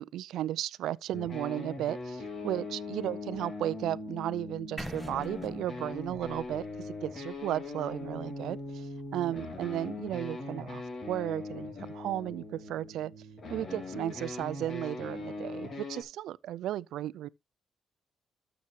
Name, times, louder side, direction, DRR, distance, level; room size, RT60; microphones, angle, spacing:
voice 1, 0.0-10.8 11.1-13.1 13.5-17.3, right 13 dB, 80° right, 0.4 m, -34 dB
sound 1, 1.1-16.0, left 3 dB, 50° left, 3.5 m, -40 dB
sound 2, 4.8-8.7, right 1 dB, ahead, 1.4 m, -46 dB
12.5 x 7.1 x 2.9 m
cardioid pair, 90°, 0 cm